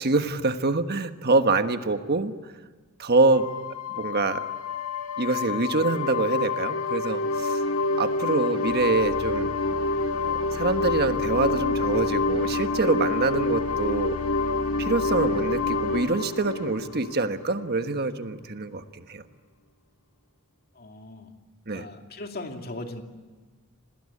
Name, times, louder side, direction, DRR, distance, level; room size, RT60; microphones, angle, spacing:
voice 1, 0.0-2.3 3.0-3.5 4.0-4.4 5.2-7.6 7.9-9.5 10.2-14.2 14.8-19.2 21.7-21.8, right 3 dB, 50° right, 8 dB, 1.4 m, -25 dB
sound 1, 3.3-17.7, left 3 dB, 70° left, 1.8 m, -27 dB
voice 2, 20.8-21.3 21.7-23.0, left 2 dB, 45° left, 4 dB, 2.6 m, -38 dB
26.5 x 19.5 x 8.6 m, 1.4 s
head